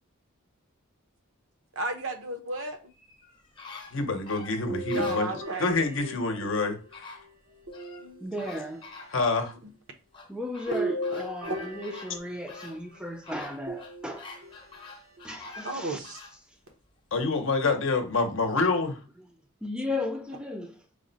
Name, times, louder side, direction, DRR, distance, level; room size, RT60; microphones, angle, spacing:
voice 1, 1.7-2.8 4.9-5.7 8.0-8.2 11.5-11.6 15.6-16.2, right 2 dB, 60° right, 0.7 m, -33 dB
sound 1, 2.9-5.8 6.5-6.6 6.9-8.1 8.4-9.6 10.1-16.4 16.9-17.0, left 3 dB, 20° left, 0.8 m, -46 dB
voice 2, 3.9-5.3 5.6-6.8 9.1-9.5 17.1-19.0, left 3 dB, 60° left, 0.7 m, -26 dB
sound 2, 4.7-6.9 7.7-8.7 10.7-12.7 13.7-14.5 15.2-15.3 16.7-16.8, right 1 dB, 85° right, 1.0 m, -35 dB
voice 3, 8.2-8.9 10.3-14.3 15.2-16.1 19.2-19.3 19.6-20.8, left 1 dB, 5° right, 0.4 m, -35 dB
4.9 x 2.1 x 3.9 m
head